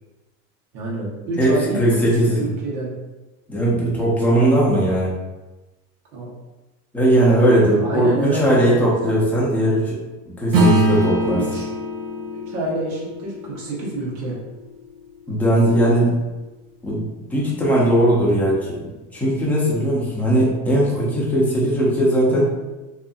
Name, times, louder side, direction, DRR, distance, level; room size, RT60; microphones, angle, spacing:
voice 1, 0.7-1.8 2.3-3.0 6.1-6.3 7.8-8.9 11.3-11.7 12.5-14.4 22.2-22.4, right 2 dB, 85° right, -4 dB, 1.1 m, -28 dB
voice 2, 1.4-2.4 3.5-5.1 6.9-10.0 10.4-11.4 15.3-16.1 16.8-17.0 17.3-18.8 19.1-22.5, right 1 dB, 5° left, -6 dB, 0.6 m, -18 dB
Acoustic guitar / Strum, 10.5-15.3, right 1 dB, 65° right, 0.8 m, -23 dB
2.7 x 2.5 x 2.3 m, 1.1 s
supercardioid pair, 130°, 43 cm